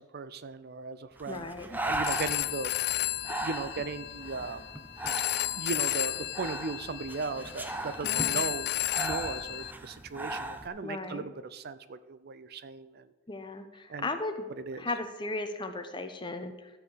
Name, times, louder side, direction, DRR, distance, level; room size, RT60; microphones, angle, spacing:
voice 1, 0.0-2.7 3.4-4.7 5.6-13.1 13.9-14.1 14.6-14.9, right 4 dB, 45° right, 14 dB, 0.5 m, -37 dB
Breathing, 1.2-10.7, right 1 dB, 10° right, 0.7 m, -38 dB
voice 2, 1.3-1.8 8.0-8.4 10.8-11.2 13.3-14.5 14.8-16.7, left 2 dB, 20° left, 7 dB, 0.9 m, -36 dB
Telephone, 1.9-9.7, left 14 dB, 50° left, 0.3 m, -33 dB
13.5 x 4.8 x 8.1 m, 1.2 s
head